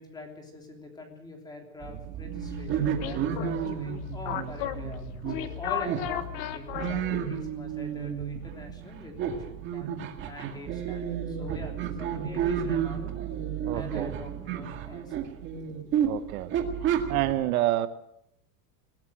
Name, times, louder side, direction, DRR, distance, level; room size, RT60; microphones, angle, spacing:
voice 1, 0.0-5.1 5.4-9.9 10.2-13.1 13.7-15.3 15.6-15.7, left 1 dB, 10° left, 3 dB, 3.2 m, -44 dB
sound 1, 1.8-17.3, right 8 dB, 25° right, 2.0 m, -32 dB
sound 2, 2.4-7.5, left 11 dB, 40° left, 1.5 m, -36 dB
voice 2, 13.6-14.1 16.0-16.5 16.8-17.9, right 14 dB, 65° right, 12 dB, 1.2 m, -28 dB
20.0 x 18.0 x 7.5 m, 0.76 s
supercardioid pair, 180°, 46 cm